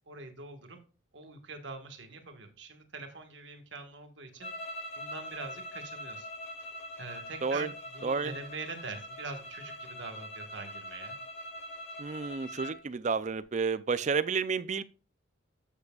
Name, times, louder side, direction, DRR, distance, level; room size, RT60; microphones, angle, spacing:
voice 1, 0.1-0.8 1.1-4.5 4.9-6.3 7.0-11.2, right 3 dB, 60° right, 1.5 m, -44 dB
sound 1, 4.4-12.8, left 1 dB, 35° left, 3.8 m, -43 dB
voice 2, 8.0-8.3 12.0-14.8, right 5 dB, 35° right, 0.4 m, -31 dB
12.5 x 7.2 x 2.4 m
head